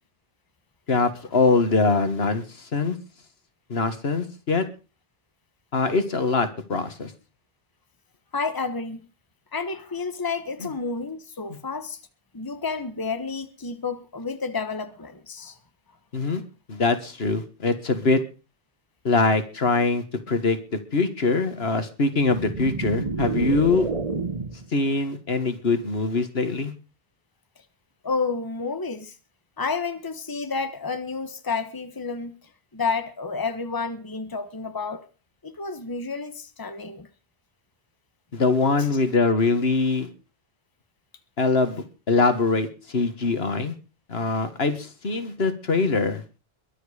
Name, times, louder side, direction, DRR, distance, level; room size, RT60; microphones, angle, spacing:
voice 1, 0.9-3.0 3.7-4.6 5.7-7.1 16.1-16.4 16.7-18.2 19.0-23.9 24.7-26.7 38.3-40.1 41.4-43.7 44.1-46.2, left 3 dB, 80° left, 1.9 m, -23 dB
voice 2, 8.3-9.1 9.5-12.0 12.3-15.6 27.6-27.7 28.0-29.2 29.6-35.0 35.4-37.1 38.8-38.9, left 4 dB, 20° left, 1.2 m, -30 dB
sound 1, 22.2-24.7, right 4 dB, 35° right, 1.2 m, -29 dB
22.5 x 7.8 x 5.0 m
omnidirectional pair, 1.0 m